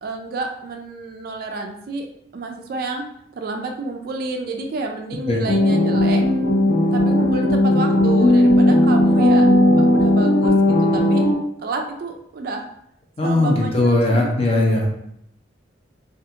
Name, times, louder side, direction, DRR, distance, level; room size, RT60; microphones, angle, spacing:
voice 1, 0.0-2.1 2.3-3.1 3.4-6.2 6.9-9.5 9.7-11.3 11.6-12.6 13.2-14.3, right 3 dB, 50° right, 3 dB, 0.3 m, -29 dB
sound 1, 5.5-11.3, left 1 dB, 85° left, 0.7 m, -16 dB
voice 2, 13.2-14.9, left 2 dB, 30° left, -1 dB, 0.5 m, -18 dB
2.4 x 2.4 x 2.7 m, 0.73 s
head